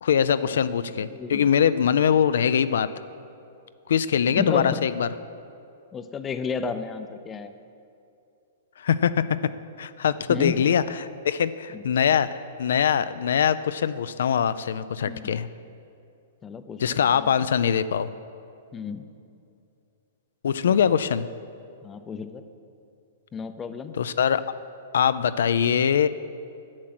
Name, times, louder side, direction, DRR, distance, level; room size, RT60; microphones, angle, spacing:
voice 1, 0.0-2.9 3.9-5.1 8.8-9.4 9.8-15.5 16.8-18.1 20.4-21.3 24.0-24.4 24.9-26.1, left 8 dB, 80° left, 14 dB, 0.3 m, -22 dB
voice 2, 1.1-1.4 4.3-4.8 5.9-7.5 10.3-10.6 11.7-11.8 15.0-15.3 16.4-17.4 18.7-19.1 20.7-20.8 21.8-22.4 23.3-23.9, left 5 dB, 15° left, 10 dB, 0.5 m, -32 dB
10.0 x 7.5 x 6.0 m, 2.5 s
hypercardioid pair, 145°, 0 cm